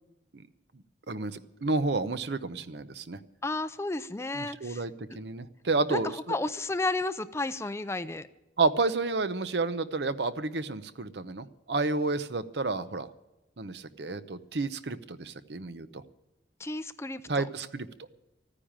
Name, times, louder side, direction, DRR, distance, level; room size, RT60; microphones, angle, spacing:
voice 1, 1.1-3.2 4.3-6.4 8.6-13.1 13.6-16.0 17.3-17.9, right 3 dB, 65° right, 12 dB, 0.8 m, -30 dB
voice 2, 3.4-4.8 5.1-5.2 5.9-6.0 6.3-8.3 16.6-17.5, left 2 dB, 15° left, 13 dB, 0.4 m, -32 dB
14.0 x 9.9 x 8.8 m, 0.97 s
head